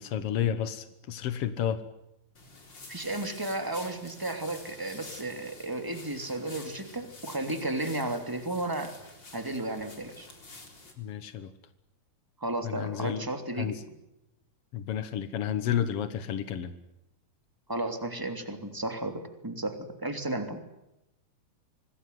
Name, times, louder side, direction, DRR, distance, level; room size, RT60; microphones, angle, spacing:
voice 1, 0.0-1.8 11.0-11.5 12.6-13.2 13.6-13.8 14.7-16.7, left 9 dB, 75° left, 12 dB, 1.3 m, -31 dB
sound 1, 2.3-10.9, left 3 dB, 30° left, 4.4 m, -49 dB
voice 2, 2.9-8.9 9.3-10.3 12.4-13.8 17.7-20.6, right 2 dB, 5° right, 7 dB, 2.3 m, -33 dB
26.0 x 19.5 x 9.5 m, 0.87 s
omnidirectional pair, 4.5 m